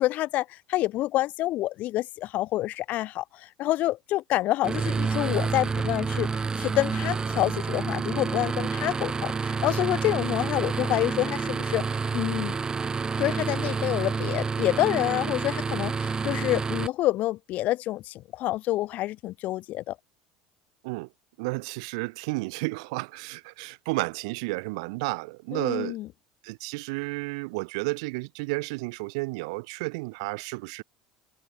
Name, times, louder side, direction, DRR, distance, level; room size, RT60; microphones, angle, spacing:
voice 1, 0.0-11.8 12.1-12.6 13.2-20.0 25.5-26.1, left 16 dB, 50° left, 0.9 m, -28 dB
sound 1, 4.6-16.9, right 5 dB, 20° right, 0.8 m, -29 dB
voice 2, 21.4-26.0 26.4-30.8, right 27 dB, 65° right, 0.7 m, -32 dB
figure-of-eight pair, 70°, 3 cm